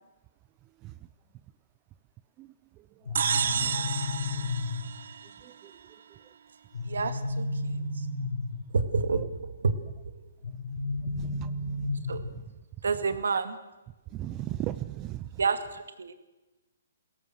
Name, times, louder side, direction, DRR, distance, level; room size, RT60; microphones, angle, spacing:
sound 1, 3.1-5.1 6.7-8.8 10.4-12.4, left 3 dB, 80° left, 4.7 m, -33 dB
sound 2, 3.2-5.7, right 7 dB, 65° right, 0.8 m, -31 dB
voice 1, 3.4-3.8 5.4-5.7 9.1-9.2 11.2-12.0 14.1-15.3, right 14 dB, 20° right, 13 dB, 0.6 m, -37 dB
voice 2, 6.9-8.1 8.7-9.8 10.1-10.2 12.1-12.2 12.8-13.6 15.4-16.1, right 4 dB, 85° right, 10 dB, 2.3 m, -29 dB
21.5 x 17.0 x 7.9 m, 1.1 s
hypercardioid pair, 155°, 0 cm